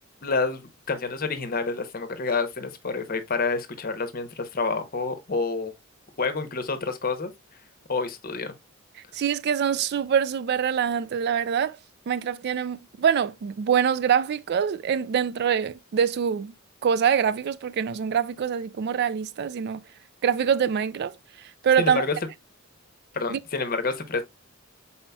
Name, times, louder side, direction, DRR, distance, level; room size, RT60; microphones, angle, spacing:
voice 1, 0.2-5.7 6.2-7.3 7.9-8.5 21.8-22.1 23.1-24.2, left 4 dB, 45° left, 0.8 m, -28 dB
voice 2, 9.1-11.8 12.1-16.5 16.8-19.8 20.2-21.1 21.6-22.0 23.3-23.4, right 7 dB, 50° right, 0.3 m, -24 dB
5.5 x 4.2 x 2.2 m
head